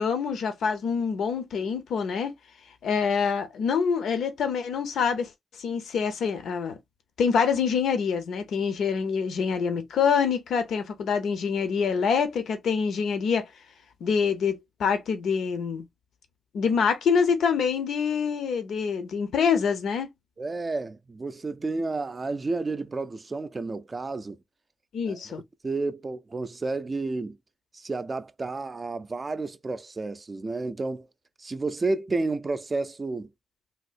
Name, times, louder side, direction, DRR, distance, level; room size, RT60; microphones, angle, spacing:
voice 1, 0.0-2.3 2.8-5.3 5.6-6.8 7.2-13.5 14.0-15.8 16.5-20.1 24.9-25.4, left 6 dB, 85° left, 0.7 m, -26 dB
voice 2, 20.4-24.4 25.1-25.2 25.6-27.4 27.7-31.1 31.4-33.3, right 3 dB, 35° right, 0.4 m, -31 dB
3.4 x 2.7 x 2.5 m
cardioid pair, 95°, 0 cm